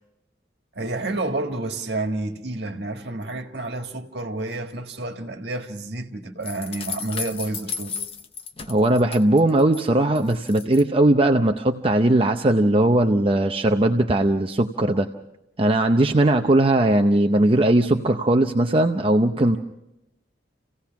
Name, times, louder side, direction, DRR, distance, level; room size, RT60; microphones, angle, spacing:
voice 1, 0.8-7.9, right 2 dB, 70° right, 1.7 m, -30 dB
sound 1, 6.4-9.8 10.1-10.8, left 6 dB, 35° left, 0.8 m, -34 dB
voice 2, 8.7-15.1 15.6-19.6, right 1 dB, 30° right, 0.6 m, -19 dB
28.5 x 16.5 x 5.9 m
head